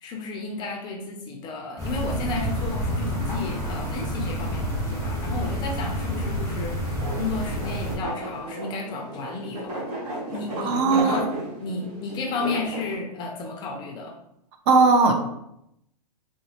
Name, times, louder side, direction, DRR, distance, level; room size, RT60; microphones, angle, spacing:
voice 1, 0.0-9.9 10.3-11.3 11.6-14.1, left 3 dB, 20° left, 1 dB, 0.4 m, -33 dB
sound 1, 1.8-8.0, equal, 15° right, 1.2 m, -29 dB
sound 2, 6.1-12.9, right 1 dB, 65° right, 1.2 m, -34 dB
voice 2, 10.6-11.3 14.7-15.1, right 4 dB, 40° right, 4 dB, 0.5 m, -18 dB
3.9 x 2.0 x 2.8 m, 0.79 s
hypercardioid pair, 125°, 21 cm